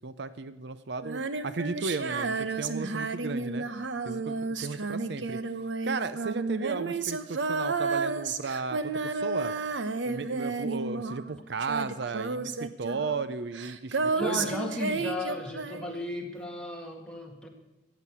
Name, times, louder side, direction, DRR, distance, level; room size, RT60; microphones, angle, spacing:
voice 1, 0.0-3.7 4.0-5.4 5.8-9.5 10.0-14.5, right 4 dB, 65° right, 14 dB, 0.6 m, -35 dB
Female singing, 1.0-11.3 11.6-16.1, right 4 dB, 80° right, 0.9 m, -32 dB
voice 2, 14.1-17.5, left 1 dB, 5° left, 1 dB, 2.0 m, -35 dB
14.0 x 9.0 x 8.3 m, 1.0 s
head